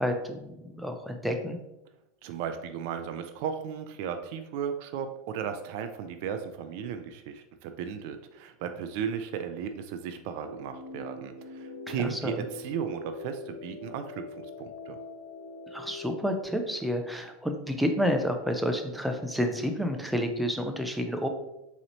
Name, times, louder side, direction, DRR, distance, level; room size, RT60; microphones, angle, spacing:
voice 1, 0.0-1.6 11.9-12.4 15.7-21.3, equal, ahead, 4 dB, 0.5 m, -30 dB
voice 2, 2.2-15.0, right 8 dB, 60° right, 8 dB, 0.3 m, -35 dB
sound 1, 10.4-16.4, left 3 dB, 85° left, 0.6 m, -43 dB
3.8 x 3.0 x 3.0 m, 0.92 s
hypercardioid pair, 95°, 0 cm